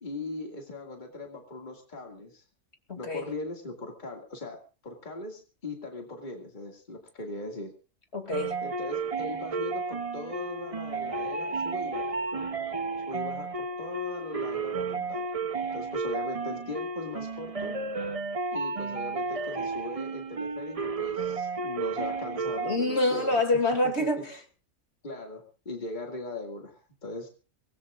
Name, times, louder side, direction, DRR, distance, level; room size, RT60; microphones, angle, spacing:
voice 1, 0.0-2.4 3.0-7.7 8.6-12.5 13.1-15.2 15.7-17.8 18.5-23.3 25.0-27.3, left 2 dB, 35° left, 2 dB, 2.4 m, -39 dB
voice 2, 2.9-3.2 8.1-8.5 22.6-24.4, left 2 dB, 55° left, 5 dB, 2.8 m, -26 dB
sound 1, 8.3-22.8, right 4 dB, 30° right, 0.8 m, -32 dB
23.5 x 19.0 x 2.5 m, 0.34 s
omnidirectional pair, 1.4 m